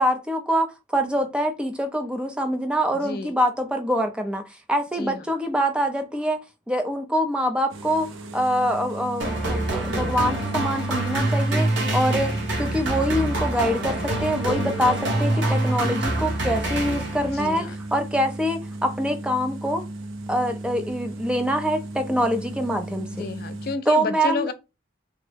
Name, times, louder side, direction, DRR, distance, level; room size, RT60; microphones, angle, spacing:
voice 1, 0.0-6.4 6.7-19.8 20.3-23.3 23.9-24.5, equal, 5° right, 0.4 m, -25 dB
voice 2, 2.9-3.3 5.0-5.2 14.4-14.7 17.3-17.8 23.1-24.5, left 3 dB, 50° left, 0.4 m, -31 dB
sound 1, 7.7-23.8, right 2 dB, 85° right, 0.5 m, -36 dB
sound 2, 9.2-17.5, right 1 dB, 70° right, 1.0 m, -25 dB
3.5 x 2.1 x 3.3 m
head